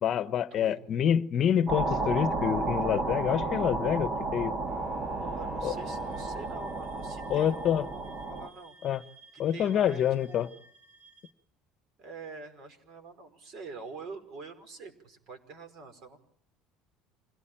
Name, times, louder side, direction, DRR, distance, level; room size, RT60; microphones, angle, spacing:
voice 1, 0.0-4.5 5.6-5.7 7.3-7.8 8.8-9.0 9.4-10.5, left 9 dB, 40° left, 1.1 m, -27 dB
sound 1, 1.7-8.5, right 2 dB, 35° right, 2.0 m, -32 dB
sound 2, 4.6-7.6, left 2 dB, ahead, 3.5 m, -49 dB
voice 2, 5.2-9.0 9.3-10.5 12.0-16.2, right 4 dB, 50° right, 5.3 m, -46 dB
sound 3, 5.8-11.3, right 2 dB, 90° right, 4.1 m, -56 dB
27.0 x 17.5 x 8.9 m
cardioid pair, 140°, 0 cm